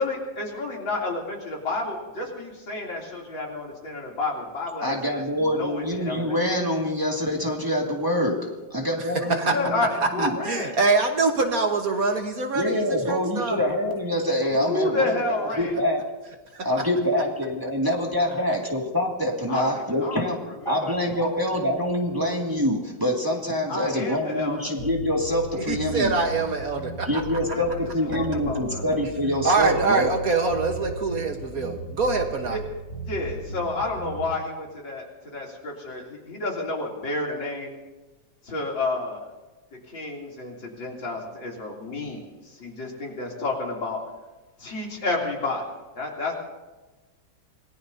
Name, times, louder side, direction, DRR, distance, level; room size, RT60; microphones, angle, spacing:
voice 1, 0.0-5.0 5.4-6.4 9.2-10.7 14.5-15.7 19.5-21.6 23.7-24.7 27.5-28.8 32.5-32.6 33.0-35.0 35.3-37.8 38.4-39.3 39.9-44.0 44.6-45.6 46.0-46.3, left 2 dB, 80° left, -2 dB, 3.9 m, -30 dB
voice 2, 4.8-8.4 8.7-9.8 10.2-10.3 12.5-16.0 16.6-20.4 20.6-26.1 27.1-30.1, left 1 dB, 10° right, -1 dB, 2.1 m, -25 dB
voice 3, 9.0-9.6 10.0-13.6 16.5-16.7 25.5-27.2 29.4-32.6, right 3 dB, 50° right, 4 dB, 1.7 m, -24 dB
sound 1, 24.8-34.4, right 2 dB, 40° left, 6.2 m, -36 dB
27.0 x 19.0 x 2.8 m, 1.2 s
omnidirectional pair, 2.0 m